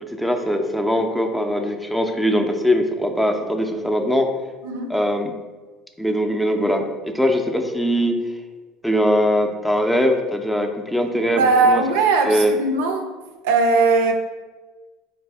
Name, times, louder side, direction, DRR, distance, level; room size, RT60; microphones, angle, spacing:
voice 1, 0.1-4.3 4.9-5.3 6.0-8.2 8.8-11.8 12.2-12.6, equal, 5° left, 0.4 m, -21 dB
voice 2, 4.6-4.9 11.3-13.0 13.4-14.1, right 3 dB, 85° right, 0.4 m, -18 dB
4.1 x 2.5 x 3.4 m
supercardioid pair, 95°, 0 cm